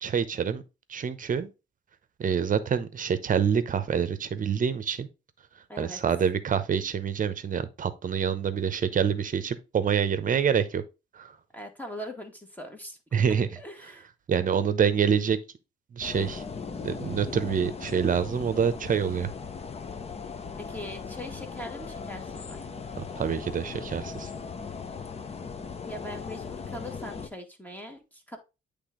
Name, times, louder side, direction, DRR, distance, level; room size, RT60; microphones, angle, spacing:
voice 1, 0.0-0.6 0.9-1.5 2.2-5.1 5.8-10.8 11.1-11.3 13.1-13.5 14.3-15.4 15.9-16.4 16.8-19.3 23.0-24.3, right 7 dB, 40° right, 0.8 m, -26 dB
voice 2, 5.7-6.0 11.5-13.0 13.2-14.1 20.6-22.6 25.9-28.4, equal, 10° left, 1.4 m, -41 dB
sound 1, 16.0-27.3, left 5 dB, 30° left, 0.7 m, -38 dB
8.2 x 3.4 x 3.7 m
cardioid pair, 90°, 20 cm